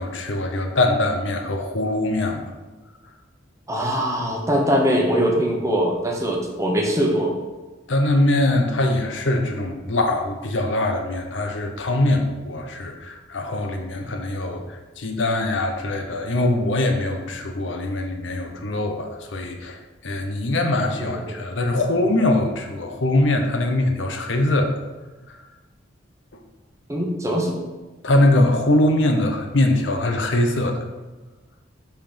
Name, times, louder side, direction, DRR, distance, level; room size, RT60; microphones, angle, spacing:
voice 1, 0.0-2.4 7.9-19.8 20.0-24.8 28.0-30.8, left 1 dB, 75° left, 4 dB, 0.9 m, -22 dB
voice 2, 3.7-7.4 21.0-21.3 26.9-27.6, equal, 15° right, 0 dB, 1.0 m, -22 dB
5.6 x 4.5 x 5.1 m, 1.2 s
head